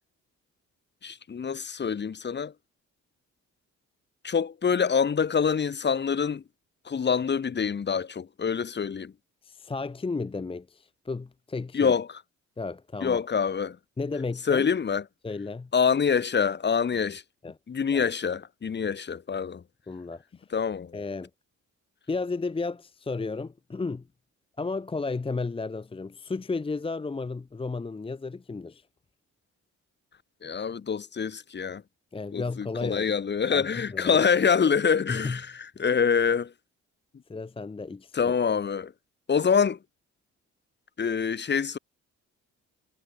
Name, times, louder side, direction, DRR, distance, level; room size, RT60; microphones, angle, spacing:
voice 1, 1.0-2.5 4.2-6.4 6.9-9.1 11.7-12.1 13.0-13.8 14.5-15.0 15.7-17.2 17.7-19.6 20.5-20.9 30.4-31.8 32.3-35.5 35.8-36.5 38.1-38.9 39.3-39.8 41.0-41.8, left 6 dB, 35° left, 1.5 m, -25 dB
voice 2, 9.4-12.0 12.6-13.3 14.0-14.7 15.2-15.7 17.4-17.6 17.9-18.1 19.9-20.2 20.9-21.3 22.1-24.1 24.6-28.8 32.1-33.2 33.5-34.2 35.1-35.4 37.3-38.4, left 3 dB, 20° left, 0.8 m, -33 dB
cardioid pair, 90°, 30 cm